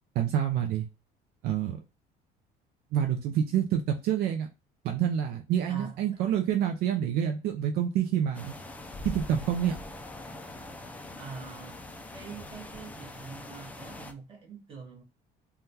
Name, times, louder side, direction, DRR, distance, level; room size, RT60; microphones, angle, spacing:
voice 1, 0.2-0.9 1.4-1.8 2.9-4.5 4.8-8.5 9.0-9.8, right 9 dB, 70° right, 0.5 m, -27 dB
voice 2, 5.7-6.1 11.2-11.8 12.1-15.0, right 5 dB, 35° right, 1.3 m, -44 dB
sound 1, 8.3-14.1, left 2 dB, 10° left, 0.4 m, -42 dB
3.5 x 2.3 x 2.7 m
cardioid pair, 145°, 17 cm